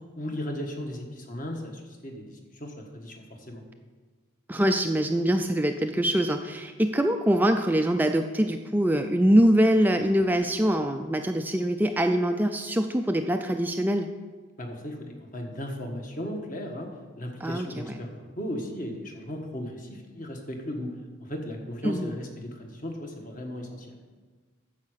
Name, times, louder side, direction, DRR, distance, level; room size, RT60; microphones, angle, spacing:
voice 1, 0.2-3.6 14.6-16.9 17.2-20.9 21.2-24.0, left 1 dB, 40° left, 2 dB, 1.4 m, -36 dB
voice 2, 4.5-14.1 17.4-17.9 21.8-22.1, equal, 10° right, 5 dB, 0.3 m, -24 dB
9.6 x 7.3 x 6.4 m, 1.4 s
head